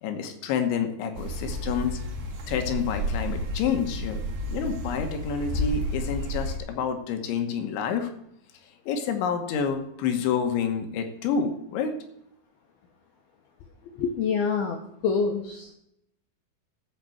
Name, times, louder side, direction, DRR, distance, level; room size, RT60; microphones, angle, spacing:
voice 1, 0.0-2.0 2.5-4.2 4.5-8.1 8.9-12.0, left 7 dB, 70° left, 6 dB, 3.3 m, -28 dB
sound 1, 1.1-6.6, equal, 65° right, 1.6 m, -31 dB
voice 2, 13.9-15.8, left 5 dB, 90° left, 3 dB, 2.2 m, -27 dB
13.0 x 6.9 x 7.7 m, 0.75 s
omnidirectional pair, 5.9 m